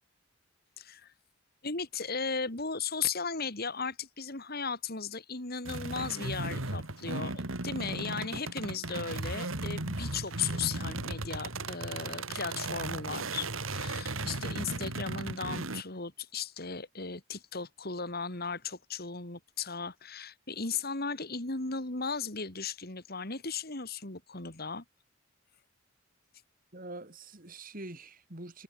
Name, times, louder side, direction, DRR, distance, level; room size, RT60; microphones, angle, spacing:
voice 1, 0.8-1.1 1.6-24.8, left 5 dB, 50° left, 2.7 m, -36 dB
sound 1, 5.6-15.8, right 2 dB, 85° right, 3.4 m, -36 dB
voice 2, 26.7-28.6, right 2 dB, 45° right, 3.3 m, -44 dB
head